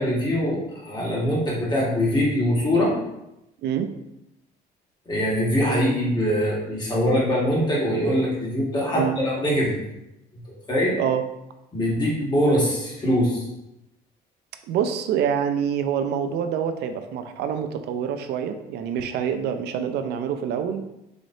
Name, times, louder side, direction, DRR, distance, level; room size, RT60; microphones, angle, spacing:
voice 1, 0.0-2.9 5.1-9.8 10.7-10.9 11.7-13.5, equal, 25° left, -5 dB, 1.5 m, -23 dB
voice 2, 3.6-3.9 8.9-9.2 11.0-11.2 14.7-20.8, right 8 dB, 75° right, 8 dB, 0.4 m, -26 dB
3.9 x 3.2 x 2.6 m, 0.87 s
cardioid pair, 110°, 17 cm